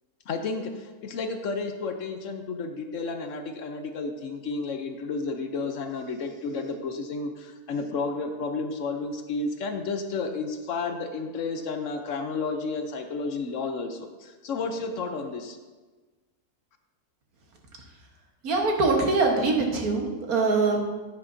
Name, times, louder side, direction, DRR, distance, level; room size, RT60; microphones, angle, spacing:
voice 1, 0.3-15.6, left 4 dB, 65° left, 6 dB, 1.0 m, -32 dB
voice 2, 18.4-20.8, right 3 dB, 85° right, 1 dB, 1.8 m, -23 dB
9.9 x 9.4 x 2.7 m, 1.3 s
omnidirectional pair, 1.5 m